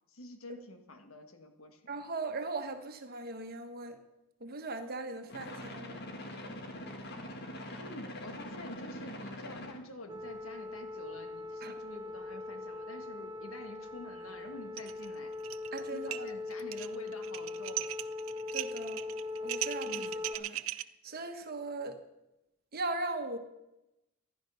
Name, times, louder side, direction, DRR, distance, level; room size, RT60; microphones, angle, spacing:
voice 1, 0.1-2.0 7.8-15.3 15.9-17.9 19.8-20.2, left 2 dB, 80° left, 6 dB, 1.6 m, -48 dB
voice 2, 1.9-4.0 4.4-6.0 11.6-11.7 15.7-16.3 18.5-19.0 19.4-19.9 20.3-20.6 21.0-22.0 22.7-23.4, right 2 dB, 45° right, 7 dB, 1.4 m, -38 dB
sound 1, 5.3-9.8, left 1 dB, 50° left, 1.6 m, -43 dB
sound 2, 10.1-20.4, left 3 dB, 20° right, 0.5 m, -41 dB
sound 3, 14.8-15.1 15.3-15.8 16.1-20.8, right 14 dB, 75° right, 0.5 m, -38 dB
15.5 x 11.5 x 5.6 m, 0.92 s
head